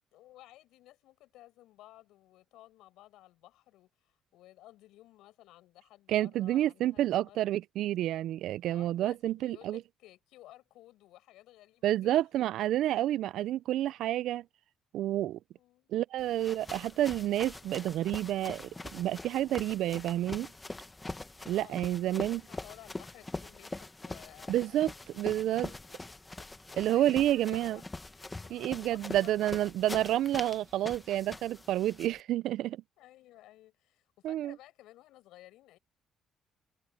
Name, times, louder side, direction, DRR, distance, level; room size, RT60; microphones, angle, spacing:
voice 1, 0.1-7.5 8.7-12.3 15.6-15.9 21.5-24.9 25.3-26.0 26.4-27.8 28.1-29.7 33.0-35.8, left 15 dB, 85° left, 7.3 m, -56 dB
voice 2, 6.1-9.8 11.8-14.4 14.9-15.4 15.9-20.5 21.5-22.4 24.5-25.7 26.8-27.8 28.5-32.8 34.2-34.6, right 13 dB, 70° right, 0.3 m, -29 dB
sound 1, 16.2-32.2, left 2 dB, 15° left, 1.2 m, -43 dB
cardioid pair, 125°, 0 cm